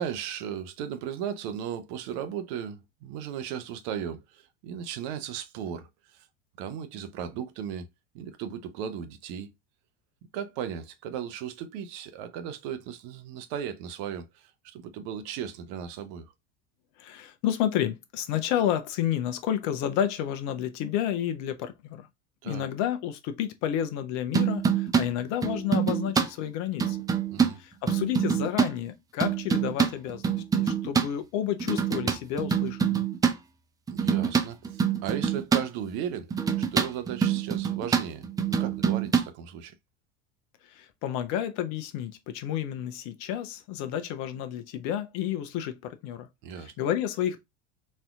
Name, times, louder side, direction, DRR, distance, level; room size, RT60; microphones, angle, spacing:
voice 1, 0.0-6.3 6.6-7.9 8.1-9.5 10.3-16.3 22.4-22.6 27.3-27.6 33.9-36.3 36.6-39.7 46.4-46.7, right 8 dB, 55° right, 0.8 m, -36 dB
voice 2, 17.0-22.1 22.4-27.0 27.6-33.1 40.7-46.3 46.6-47.4, left 10 dB, 50° left, 0.8 m, -30 dB
sound 1, 24.3-25.1 25.4-26.3 26.8-27.5 27.9-28.7 29.2-31.1 31.6-33.4 33.9-35.6 36.3-39.3, right 7 dB, 10° right, 0.3 m, -25 dB
4.2 x 2.7 x 2.3 m
hypercardioid pair, 80°, 36 cm